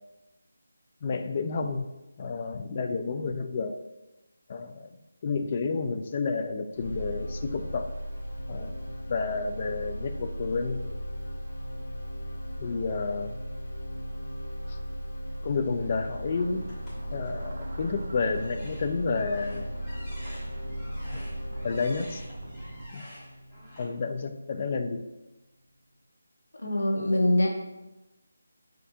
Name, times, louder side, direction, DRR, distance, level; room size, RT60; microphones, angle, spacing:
voice 1, 1.0-1.9 2.2-3.8 4.5-4.9 5.2-7.9 8.5-8.8 9.1-10.8 12.6-13.3 14.7-14.8 15.4-16.7 17.1-19.7 21.1-21.2 21.6-22.2 22.9-23.0 23.8-25.0, left 4 dB, 35° left, 7 dB, 0.3 m, -30 dB
sound 1, 6.7-24.8, equal, 50° left, 0.9 m, -37 dB
sound 2, 15.9-22.9, right 2 dB, 60° right, 0.4 m, -44 dB
sound 3, 16.7-17.8 18.3-23.8, left 1 dB, 15° left, 1.3 m, -50 dB
voice 2, 26.6-27.5, left 1 dB, 90° left, -1 dB, 1.1 m, -23 dB
6.6 x 2.6 x 2.7 m, 1.0 s
figure-of-eight pair, 165°, 0 cm